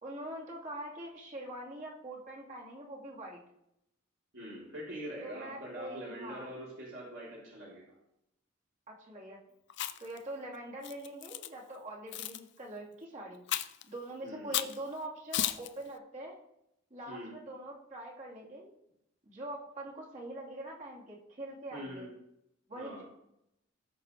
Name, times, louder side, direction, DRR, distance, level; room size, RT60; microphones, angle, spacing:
voice 1, 0.0-3.4 5.2-6.5 8.9-9.4 10.0-13.4 13.8-16.4 16.9-18.7 19.2-22.1 22.7-23.0, right 1 dB, 35° right, -4 dB, 2.8 m, -43 dB
voice 2, 4.3-7.8 14.2-14.6 17.1-17.3 21.7-22.1 22.7-23.0, right 1 dB, 65° right, -7 dB, 3.6 m, -43 dB
Chewing mastication, 9.7-10.2 10.8-11.5 12.1-12.4 13.5-13.8 14.5-14.8 15.3-15.7, left 12 dB, 60° left, 0.5 m, -34 dB
18.5 x 6.4 x 3.3 m, 0.82 s
head